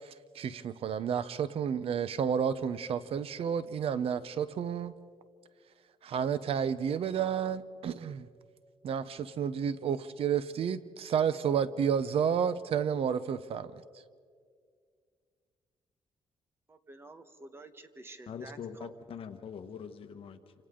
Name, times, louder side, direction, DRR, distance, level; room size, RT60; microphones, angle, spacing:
voice 1, 0.3-4.9 6.0-8.3 8.8-13.8, right 7 dB, 60° right, 0.7 m, -31 dB
voice 2, 16.7-18.9, right 2 dB, 20° right, 1.1 m, -50 dB
voice 3, 18.3-20.5, left 7 dB, 55° left, 1.3 m, -43 dB
28.0 x 26.0 x 3.8 m
cardioid pair, 140°, 11 cm